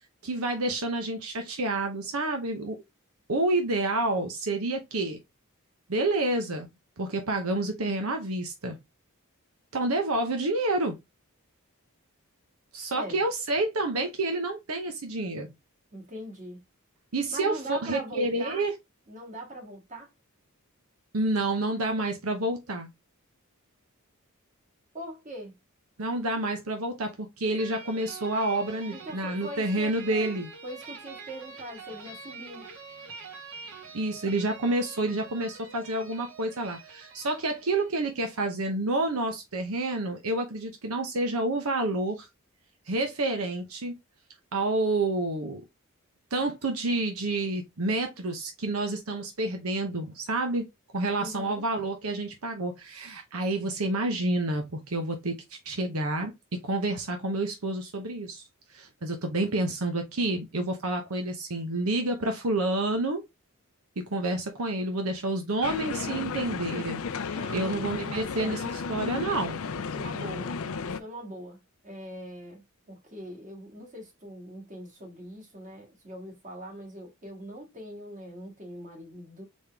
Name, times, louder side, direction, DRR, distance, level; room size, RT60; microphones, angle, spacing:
voice 1, 0.2-2.8 3.3-5.2 5.9-6.7 7.0-8.8 9.7-11.0 12.7-15.5 17.1-18.7 21.1-22.9 26.0-30.5 33.9-42.3 42.9-43.9 44.5-45.6 46.3-50.7 50.9-58.4 58.7-63.2 64.1-67.0 67.3-69.6, right 2 dB, 80° right, 0.9 m, -29 dB
voice 2, 15.9-16.6 17.3-18.7 19.1-20.1 24.9-25.6 28.9-32.7 51.2-51.7 67.3-68.6 69.7-79.4, equal, 35° right, 1.8 m, -42 dB
sound 1, 27.6-38.3, right 5 dB, 65° right, 2.1 m, -45 dB
sound 2, 65.6-71.0, left 5 dB, 70° left, 0.5 m, -33 dB
4.2 x 3.5 x 3.5 m
head